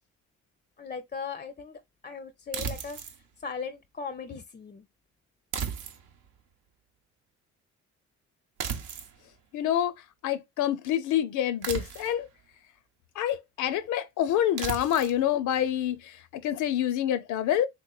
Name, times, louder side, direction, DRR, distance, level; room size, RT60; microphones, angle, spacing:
voice 1, 0.8-3.0 3.4-4.9, left 5 dB, 25° left, 0.4 m, -38 dB
sound 1, 2.5-3.2 5.5-6.3 8.6-9.2 11.6-12.3 14.6-15.2, right 7 dB, 80° right, 0.7 m, -35 dB
voice 2, 9.5-9.9 10.2-12.3 13.2-16.0 16.4-17.7, left 11 dB, 80° left, 0.5 m, -27 dB
3.4 x 3.0 x 2.2 m
cardioid pair, 90°, 30 cm